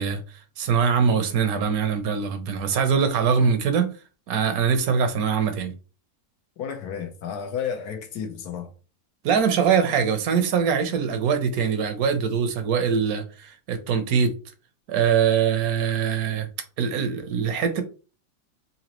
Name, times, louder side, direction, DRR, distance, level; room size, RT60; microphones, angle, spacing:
voice 1, 0.0-3.9 4.3-5.7 9.2-14.3 14.9-16.5 16.8-17.8, right 6 dB, 75° right, 1.1 m, -23 dB
voice 2, 6.6-8.7, left 7 dB, 80° left, 1.3 m, -32 dB
4.0 x 2.8 x 2.9 m
omnidirectional pair, 1.6 m